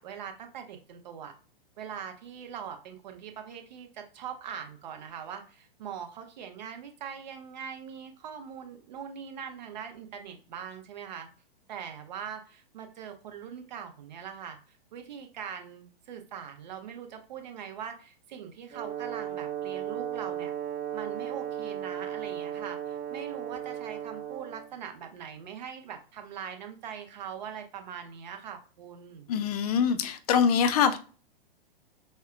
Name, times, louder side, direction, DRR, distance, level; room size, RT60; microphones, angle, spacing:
voice 1, 0.0-1.3 1.8-11.3 11.7-20.5 20.9-29.3, right 8 dB, 50° right, 0.9 m, -42 dB
Brass instrument, 18.7-24.7, right 10 dB, 20° right, 0.6 m, -36 dB
voice 2, 29.3-31.0, left 7 dB, 40° left, 0.5 m, -24 dB
5.4 x 2.2 x 2.4 m
figure-of-eight pair, 110°, 29 cm